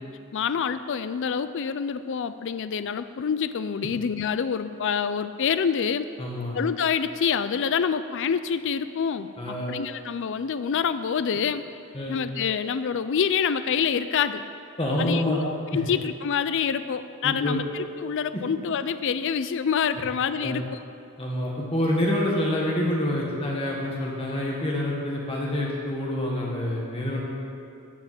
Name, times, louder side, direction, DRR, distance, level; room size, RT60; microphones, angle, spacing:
voice 1, 0.3-6.1 6.5-11.6 12.1-14.4 15.0-20.8, left 7 dB, 55° left, 12 dB, 0.4 m, -27 dB
voice 2, 6.2-6.6 9.4-9.8 11.9-12.2 14.8-15.4 17.2-17.6 20.4-20.6 21.2-27.2, left 1 dB, 25° left, -3 dB, 1.7 m, -27 dB
13.5 x 5.8 x 9.1 m, 2.6 s
head